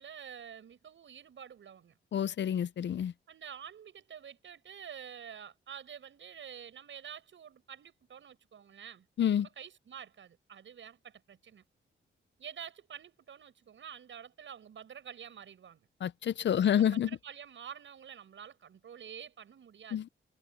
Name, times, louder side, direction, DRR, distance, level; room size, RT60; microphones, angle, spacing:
voice 1, 0.0-2.0 3.3-9.1 9.4-11.6 12.4-15.9 16.6-20.0, right 8 dB, 70° right, 7.5 m, -48 dB
voice 2, 2.1-3.1 9.2-9.5 16.0-17.1 19.9-20.1, left 9 dB, 60° left, 0.6 m, -28 dB
cardioid pair, 115°, 21 cm